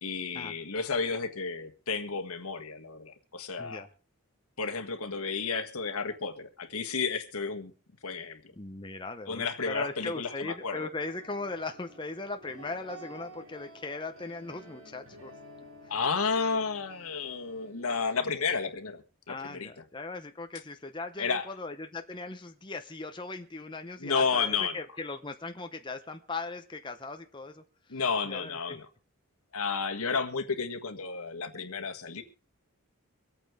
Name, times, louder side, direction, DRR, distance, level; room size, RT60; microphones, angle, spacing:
voice 1, 0.0-3.9 4.6-7.7 8.0-8.4 9.3-10.9 15.9-19.8 21.2-21.5 24.0-24.8 27.9-28.9 29.5-32.2, left 5 dB, 80° left, 6 dB, 1.6 m, -32 dB
voice 2, 8.6-15.3 19.3-27.6 27.9-28.8, left 3 dB, 20° left, 6 dB, 0.7 m, -39 dB
sound 1, 11.0-18.6, right 1 dB, 70° right, 3.7 m, -51 dB
24.5 x 8.8 x 3.6 m, 0.35 s
head